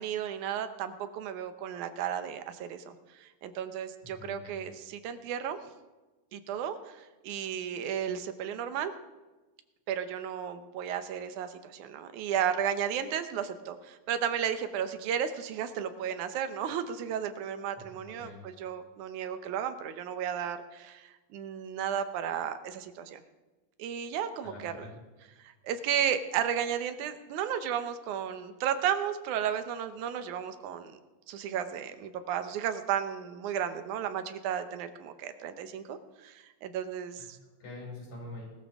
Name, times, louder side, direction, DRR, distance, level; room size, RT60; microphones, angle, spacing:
voice 1, 0.0-5.6 6.3-8.9 9.9-23.2 23.8-24.7 25.4-31.0 31.3-37.4, right 9 dB, 85° right, 10 dB, 2.4 m, -34 dB
voice 2, 4.1-4.6 17.8-18.4 24.4-24.9 37.2-38.5, left 2 dB, 90° left, -3 dB, 6.7 m, -46 dB
19.5 x 13.5 x 3.6 m, 1.2 s
omnidirectional pair, 3.4 m